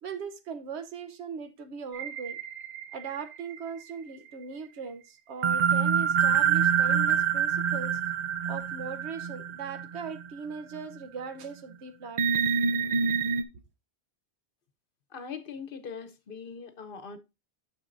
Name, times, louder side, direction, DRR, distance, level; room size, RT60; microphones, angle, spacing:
voice 1, 0.0-2.4 2.9-8.0 8.5-12.5, right 5 dB, 80° right, 1.1 m, -39 dB
sound 1, 1.9-3.9 5.4-10.3 10.7-10.8 12.2-13.4, right 7 dB, 50° right, 0.7 m, -26 dB
voice 2, 15.1-17.2, left 6 dB, 55° left, 1.0 m, -41 dB
9.7 x 6.3 x 2.5 m
omnidirectional pair, 1.1 m